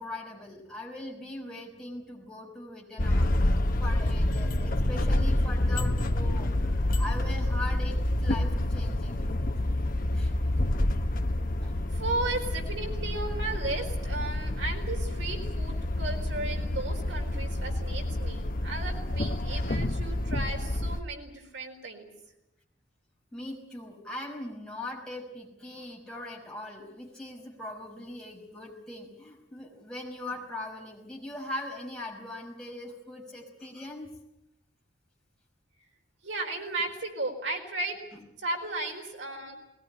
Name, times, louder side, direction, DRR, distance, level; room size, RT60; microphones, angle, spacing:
voice 1, 0.0-9.3 10.1-10.3 11.6-11.7 23.3-34.1 38.1-38.2, left 1 dB, 5° left, -2 dB, 5.4 m, -40 dB
sound 1, 3.0-21.0, left 1 dB, 50° left, 1.0 m, -28 dB
voice 2, 11.9-22.1 36.2-38.0 38.4-39.6, right 2 dB, 85° right, 3 dB, 4.5 m, -35 dB
20.5 x 18.5 x 9.9 m, 0.89 s
head